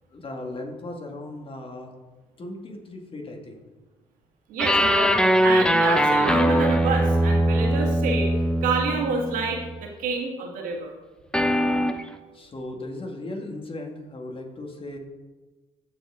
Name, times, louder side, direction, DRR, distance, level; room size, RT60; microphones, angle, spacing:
voice 1, 0.1-1.9 2.4-3.6 12.3-15.0, left 2 dB, 40° left, 2 dB, 2.2 m, -37 dB
voice 2, 4.5-8.3 8.6-11.0, right 4 dB, 70° right, 2 dB, 1.7 m, -28 dB
sound 1, 4.6-9.8 11.3-12.0, equal, 5° left, 0.8 m, -21 dB
15.5 x 5.3 x 3.7 m, 1.2 s
hypercardioid pair, 60°, 14 cm